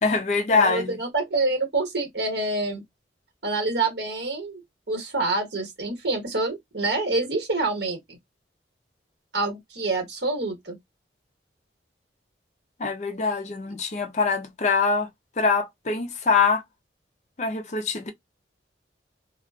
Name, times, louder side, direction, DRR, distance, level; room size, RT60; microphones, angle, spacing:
voice 1, 0.0-1.0 12.8-15.1 15.4-16.6 17.4-18.1, left 4 dB, 40° left, 0.4 m, -23 dB
voice 2, 0.5-2.8 3.4-4.6 4.9-8.2 9.3-10.8, right 3 dB, 65° right, 1.1 m, -27 dB
2.4 x 2.2 x 2.3 m
head